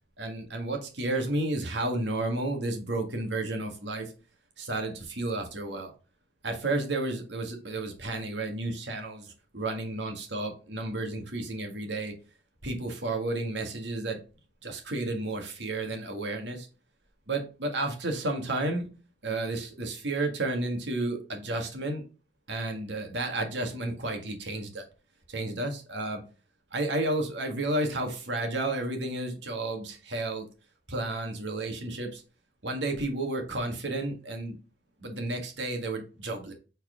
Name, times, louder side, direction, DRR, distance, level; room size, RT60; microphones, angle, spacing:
voice 1, 0.2-4.1 4.6-5.9 6.4-12.1 12.6-14.2 14.6-16.7 17.3-18.9 19.2-22.0 22.5-24.8 25.3-26.2 26.7-30.4 30.9-32.2 32.6-34.6 35.0-36.5, right 2 dB, 75° right, 4 dB, 1.6 m, -32 dB
4.6 x 4.2 x 4.8 m, 0.34 s
head